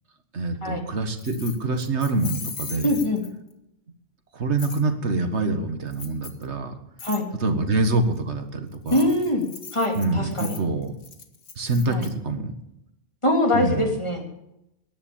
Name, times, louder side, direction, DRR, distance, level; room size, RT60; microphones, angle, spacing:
voice 1, 0.3-3.0 4.3-6.7 7.4-9.1 9.9-10.9 11.6-12.5 13.5-13.9, right 2 dB, 90° right, 7 dB, 1.9 m, -25 dB
Keys jangling, 1.2-3.5 4.6-4.8 5.9-6.4 7.0-7.2 8.7-12.1, left 5 dB, 65° left, 1.6 m, -39 dB
voice 2, 2.8-3.2 7.0-7.2 8.9-10.6 11.9-12.1 13.2-14.3, left 1 dB, 25° left, 1 dB, 3.0 m, -23 dB
14.0 x 10.5 x 8.7 m, 0.85 s
omnidirectional pair, 1.1 m